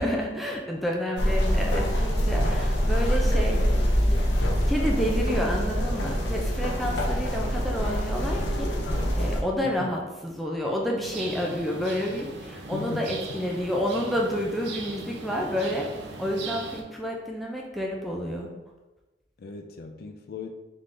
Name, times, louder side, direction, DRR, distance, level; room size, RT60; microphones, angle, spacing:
voice 1, 0.0-3.6 4.7-8.7 9.2-15.9 16.2-18.5, equal, ahead, -2 dB, 0.5 m, -29 dB
sound 1, 1.2-9.4, equal, 85° left, 0.7 m, -24 dB
voice 2, 9.6-9.9 12.7-13.4 19.4-20.5, left 4 dB, 60° left, 6 dB, 0.4 m, -38 dB
sound 2, 11.0-16.8, right 3 dB, 70° right, 0.6 m, -39 dB
3.8 x 3.6 x 3.3 m, 1.1 s
head